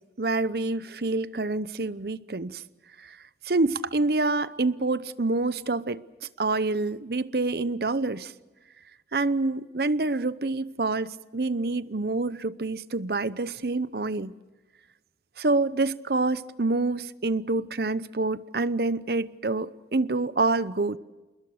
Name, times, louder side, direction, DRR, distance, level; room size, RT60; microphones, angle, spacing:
voice 1, 0.2-2.6 3.0-3.2 3.4-6.0 6.4-8.3 9.1-14.3 15.4-21.0, right 3 dB, 60° right, 0.8 m, -27 dB
28.5 x 21.0 x 6.5 m
head